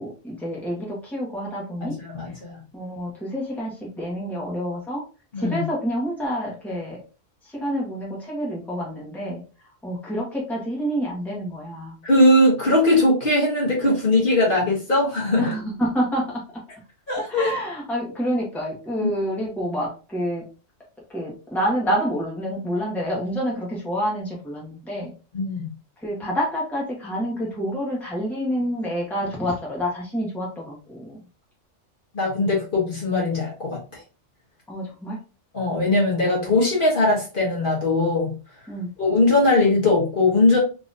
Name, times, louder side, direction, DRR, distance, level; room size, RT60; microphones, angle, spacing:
voice 1, 0.0-1.9 2.7-5.0 5.4-7.0 7.4-9.4 9.8-12.0 15.4-16.4 17.3-20.4 21.1-25.1 26.0-31.2 34.7-35.2 38.7-38.9, equal, ahead, -4 dB, 1.2 m, -28 dB
voice 2, 1.8-2.6 5.3-5.6 12.0-15.5 17.1-17.5 25.3-25.7 32.1-34.0 35.5-38.3 39.0-40.6, left 2 dB, 45° left, -4 dB, 1.4 m, -20 dB
3.8 x 3.0 x 2.5 m, 0.34 s
omnidirectional pair, 1.3 m